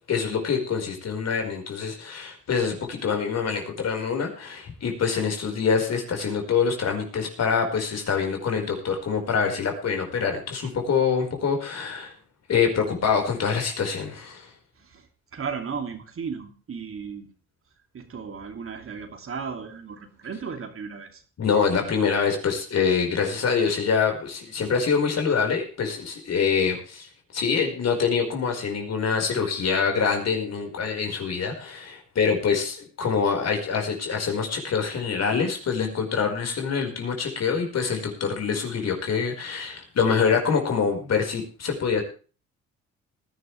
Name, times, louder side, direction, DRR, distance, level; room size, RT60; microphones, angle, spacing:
voice 1, 0.1-12.1 12.5-14.5 21.4-27.1 27.3-42.0, left 6 dB, 55° left, 3 dB, 4.9 m, -25 dB
voice 2, 15.3-17.3 17.9-21.2, right 6 dB, 45° right, 6 dB, 2.6 m, -35 dB
19.0 x 11.5 x 3.4 m, 0.37 s
cardioid pair, 90°, 30 cm